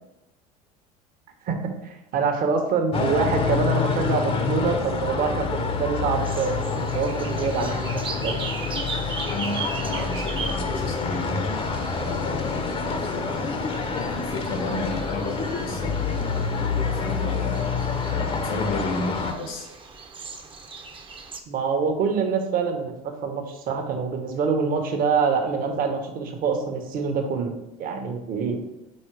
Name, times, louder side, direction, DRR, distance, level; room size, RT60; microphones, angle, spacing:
voice 1, 1.8-8.4 21.5-22.9 23.2-27.5 27.8-28.6, right 5 dB, 50° right, 4 dB, 1.3 m, -25 dB
sound 1, 2.9-19.3, left 5 dB, 30° left, 0.8 m, -27 dB
sound 2, 6.2-21.4, right 4 dB, 30° right, 0.9 m, -39 dB
voice 2, 9.3-11.7 11.9-13.5 14.1-16.0 16.9-19.7, left 2 dB, 85° left, 2 dB, 1.8 m, -33 dB
5.4 x 4.1 x 4.8 m, 0.94 s
supercardioid pair, 85°, 18 cm